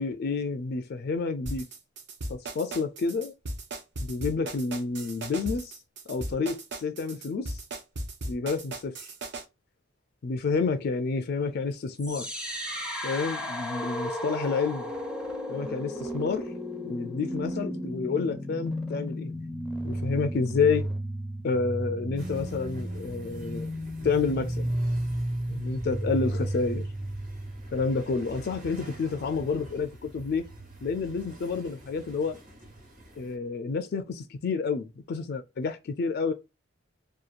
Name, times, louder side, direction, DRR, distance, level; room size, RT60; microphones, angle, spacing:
voice 1, 0.0-1.6 2.3-3.3 4.0-5.7 6.1-7.6 8.3-9.0 10.2-12.4 13.0-14.9 15.5-16.5 16.9-19.3 19.8-20.9 21.4-23.7 24.0-24.7 25.5-26.9 27.7-30.4 30.8-32.4 33.2-36.3, left 4 dB, 55° left, 0.4 m, -29 dB
sound 1, 1.5-9.4, right 2 dB, 65° right, 0.6 m, -37 dB
sound 2, 12.0-28.0, equal, 5° right, 0.5 m, -33 dB
sound 3, 22.2-33.4, equal, 45° right, 1.0 m, -48 dB
2.8 x 2.2 x 2.4 m
head